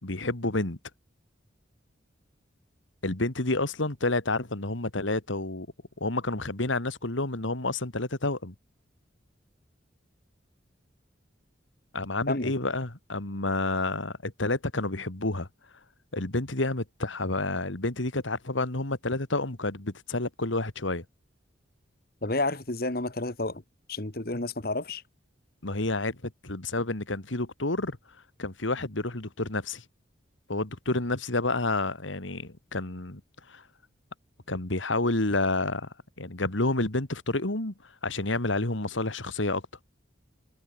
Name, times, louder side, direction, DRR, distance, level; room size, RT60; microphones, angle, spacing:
voice 1, 0.0-0.8 3.0-5.7 6.0-8.5 11.9-15.5 16.1-21.0 25.6-28.0 28.4-29.8 30.5-33.2 33.5-33.6 34.5-35.9 36.2-37.7 38.0-39.6, left 2 dB, 85° left, 2.5 m, -29 dB
voice 2, 22.2-23.6 23.9-25.0, left 2 dB, 50° left, 1.9 m, -30 dB
head